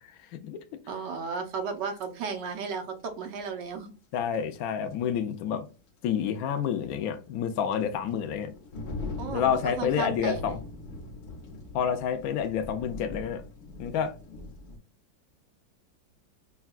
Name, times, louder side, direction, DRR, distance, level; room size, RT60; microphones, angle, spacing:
voice 1, 0.9-3.9 9.2-10.6, right 5 dB, 70° right, 1.4 m, -34 dB
sound 1, 1.8-1.9 4.3-4.4 4.9-5.0 6.5-14.8, left 3 dB, 60° left, 1.2 m, -42 dB
voice 2, 4.1-5.6 6.0-8.5 9.3-10.6 11.7-13.4 13.8-14.1, left 8 dB, 85° left, 0.7 m, -29 dB
6.4 x 2.3 x 2.3 m
omnidirectional pair, 2.1 m